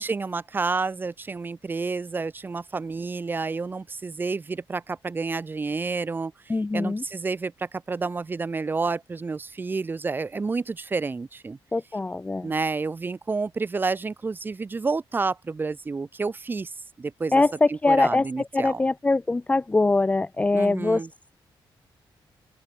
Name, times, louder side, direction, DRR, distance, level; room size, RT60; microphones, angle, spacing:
voice 1, 0.0-11.6 12.4-17.4 17.7-18.8 20.5-21.1, right 4 dB, 25° right, 1.6 m, -30 dB
voice 2, 6.5-7.0 11.7-12.5 17.3-21.0, left 2 dB, 15° left, 1.0 m, -23 dB
open air
wide cardioid pair, 170°, 9 cm